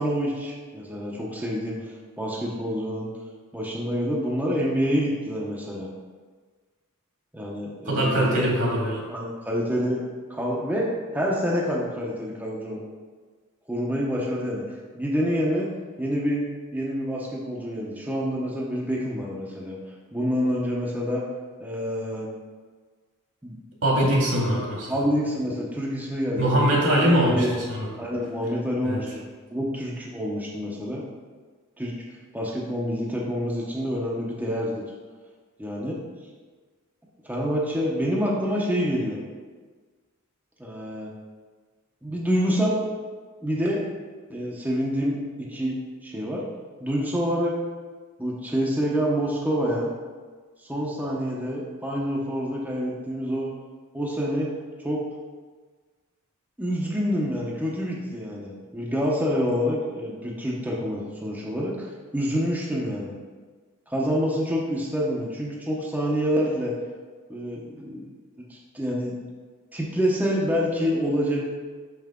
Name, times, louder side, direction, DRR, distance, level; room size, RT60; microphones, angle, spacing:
voice 1, 0.0-3.1 3.5-5.9 7.3-8.5 9.1-10.0 10.3-12.8 13.7-15.7 16.0-16.4 16.7-19.8 20.1-21.2 21.6-22.3 23.4-23.6 24.9-27.5 28.0-31.0 31.8-31.9 32.3-34.8 35.6-36.0 37.2-39.2 40.6-41.1 42.0-42.8 43.4-43.8 44.3-45.2 45.5-46.4 46.8-47.6 48.2-49.9 50.7-53.5 53.9-54.5 54.8-55.0 56.6-63.2 63.9-66.7 67.3-68.0 68.5-69.1 69.7-71.4, equal, 10° right, -4 dB, 0.8 m, -27 dB
voice 2, 7.9-9.0 23.8-25.0 26.4-27.9 28.8-29.0, right 1 dB, 70° right, -3 dB, 2.1 m, -22 dB
6.4 x 5.7 x 3.7 m, 1.5 s
head